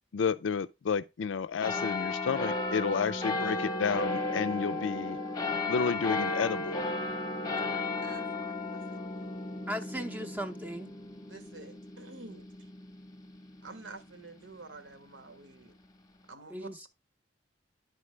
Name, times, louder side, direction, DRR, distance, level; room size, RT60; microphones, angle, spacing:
voice 1, 0.1-5.2 5.7-6.8, left 6 dB, 85° left, 0.4 m, -31 dB
sound 1, 1.6-14.5 15.1-15.2, left 2 dB, 20° left, 0.8 m, -34 dB
voice 2, 8.0-9.0 11.3-12.7 13.6-15.7 16.3-16.9, right 3 dB, 85° right, 1.4 m, -49 dB
voice 3, 9.7-10.9 16.5-16.9, equal, 10° right, 0.6 m, -37 dB
11.0 x 4.5 x 3.2 m
head